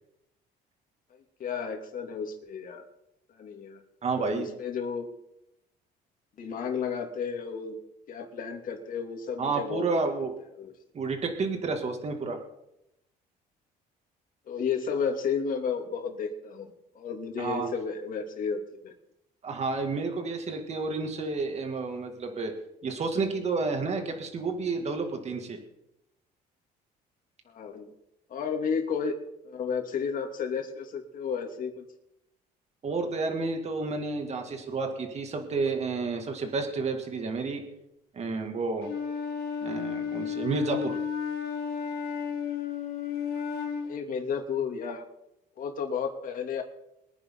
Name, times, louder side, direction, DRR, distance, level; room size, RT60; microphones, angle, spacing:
voice 1, 1.4-2.8 3.3-3.8 4.2-5.1 6.4-7.8 8.1-9.8 10.6-10.7 14.5-18.9 27.5-27.9 28.3-29.1 29.4-31.8 43.8-45.0 45.6-46.6, left 6 dB, 55° left, 3 dB, 2.9 m, -32 dB
voice 2, 4.0-4.5 9.4-10.3 10.9-12.4 17.4-17.7 19.4-22.5 22.8-25.6 32.8-37.6 38.1-38.9 39.6-41.0, right 4 dB, 40° right, 4 dB, 2.5 m, -30 dB
Wind instrument woodwind instrument, 38.8-44.0, left 7 dB, 70° left, 3.5 m, -33 dB
23.0 x 10.0 x 4.0 m, 0.83 s
cardioid pair, 110°, 17 cm